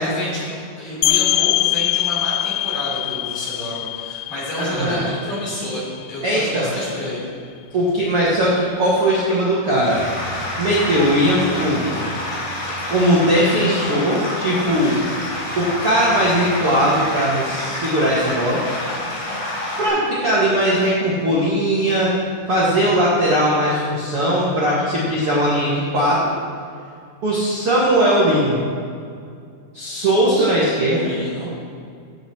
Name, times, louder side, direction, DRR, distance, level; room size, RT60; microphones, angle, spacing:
voice 1, 0.0-7.3 30.3-30.5 30.8-31.5, left 1 dB, 45° left, -6 dB, 4.7 m, -29 dB
Bell Glocke, 1.0-6.5, left 16 dB, 85° left, 2.7 m, -23 dB
voice 2, 4.6-5.1 6.2-6.7 7.7-10.0 10.6-12.0 12.9-15.0 15.6-18.6 19.8-22.1 22.5-26.2 27.2-28.6 29.7-31.1, right 1 dB, 75° right, -7 dB, 1.3 m, -19 dB
sound 1, 9.7-19.9, left 1 dB, 60° left, 5.3 m, -28 dB
16.0 x 8.0 x 4.4 m, 2.3 s
omnidirectional pair, 5.7 m